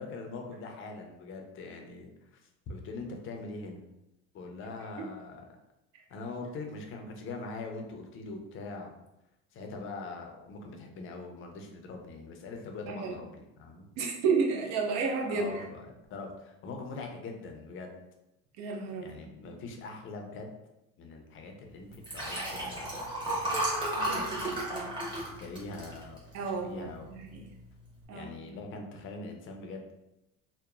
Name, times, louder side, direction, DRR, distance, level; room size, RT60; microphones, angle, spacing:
voice 1, 0.0-3.8 4.3-5.4 6.1-8.9 9.5-13.9 15.3-17.9 19.0-20.5 21.0-23.0 24.1-24.9 25.1-26.2 26.5-27.1 28.1-29.9, left 3 dB, 40° left, 3 dB, 0.5 m, -42 dB
voice 2, 14.0-15.6 18.6-19.1 24.0-25.0 26.3-27.4 28.1-28.6, right 5 dB, 60° right, 1 dB, 0.6 m, -32 dB
Liquid, 21.9-26.6 27.1-27.3 27.6-27.7, right 1 dB, 15° right, 0.9 m, -33 dB
2.9 x 2.0 x 2.4 m, 0.90 s
supercardioid pair, 110°, 31 cm